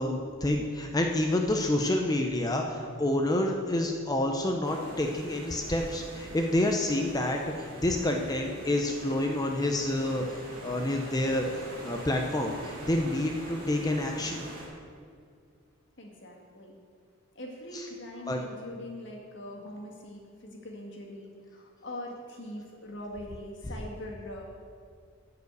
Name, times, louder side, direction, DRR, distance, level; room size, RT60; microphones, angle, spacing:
voice 1, 0.0-11.5 11.8-14.4 17.7-17.9 18.3-18.4 23.7-23.8, left 1 dB, 20° left, 2 dB, 0.6 m, -28 dB
sound 1, 4.6-14.7, right 1 dB, 40° right, 2.6 m, -44 dB
voice 2, 16.0-16.7 17.3-24.4, left 1 dB, 60° left, 0 dB, 1.8 m, -42 dB
11.5 x 4.9 x 8.1 m, 2.2 s
head